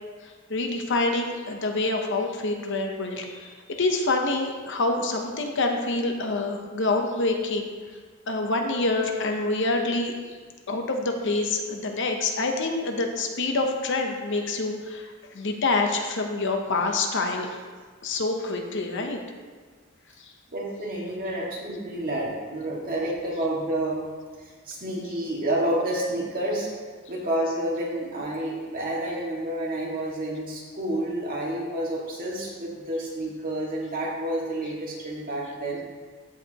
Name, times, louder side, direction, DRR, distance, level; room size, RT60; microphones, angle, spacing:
voice 1, 0.5-7.7 8.3-10.1 10.7-15.0 15.3-17.6 18.0-19.2, left 2 dB, 60° left, 3 dB, 0.9 m, -26 dB
voice 2, 20.5-24.0 24.4-26.7 27.1-35.8, right 1 dB, 45° right, -5 dB, 2.0 m, -29 dB
14.0 x 4.9 x 3.0 m, 1.5 s
head